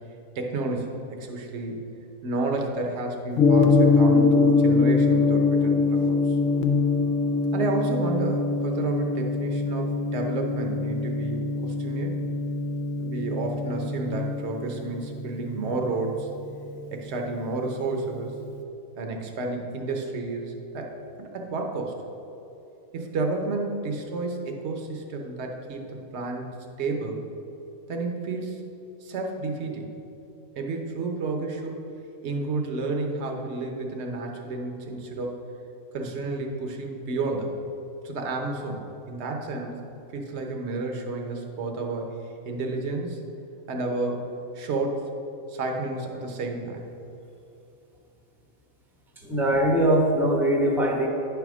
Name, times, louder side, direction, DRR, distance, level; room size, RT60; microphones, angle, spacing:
voice 1, 0.3-1.8 2.2-6.4 7.5-12.2 13.0-16.3 16.9-18.3 19.0-20.9 21.2-21.9 22.9-27.2 27.9-28.7 29.0-29.9 30.5-31.7 32.2-35.4 35.9-37.6 38.0-39.8 40.1-42.1 42.4-43.2 43.7-45.1 45.5-46.8, right 3 dB, 55° right, 2 dB, 1.1 m, -31 dB
Gong, 3.4-17.5, left 3 dB, 65° left, 0.9 m, -23 dB
voice 2, 49.2-51.1, right 1 dB, ahead, -1 dB, 0.7 m, -21 dB
9.9 x 3.5 x 6.0 m, 2.9 s
omnidirectional pair, 1.4 m